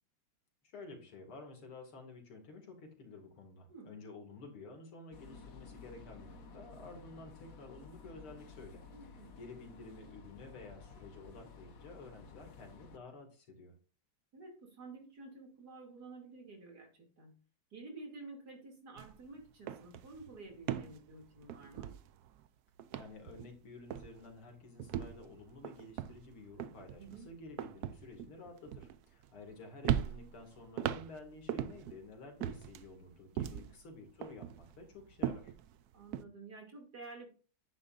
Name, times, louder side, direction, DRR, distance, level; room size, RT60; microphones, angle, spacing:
voice 1, 0.6-8.8 9.4-13.7 22.9-35.5, left 3 dB, 80° left, 3 dB, 3.2 m, -51 dB
sound 1, 5.1-13.0, left 5 dB, 50° left, 1.2 m, -54 dB
voice 2, 8.9-9.3 14.3-17.3 17.7-21.9 27.0-27.3 33.5-33.6 35.9-37.3, right 3 dB, 45° right, 1 dB, 3.3 m, -51 dB
sound 2, 19.0-19.2 19.5-22.5 22.8-23.6 23.9-24.3 24.8-29.5 29.8-32.0 32.4-33.8 34.2-36.2, right 10 dB, 80° right, 0.8 m, -39 dB
10.0 x 9.6 x 2.6 m, 0.37 s
omnidirectional pair, 2.3 m